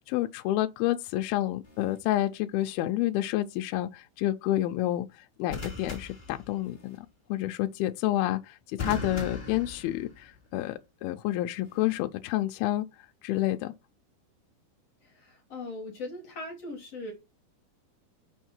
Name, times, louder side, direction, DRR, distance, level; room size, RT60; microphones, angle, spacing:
voice 1, 0.1-5.1 5.4-12.9 13.2-13.7, left 15 dB, 80° left, 2.4 m, -29 dB
sound 1, 1.6-2.0 5.5-7.0 8.8-10.4 11.6-12.0, left 3 dB, 30° left, 0.9 m, -39 dB
voice 2, 15.0-17.1, left 2 dB, 55° left, 2.0 m, -39 dB
6.5 x 5.5 x 4.4 m
omnidirectional pair, 4.6 m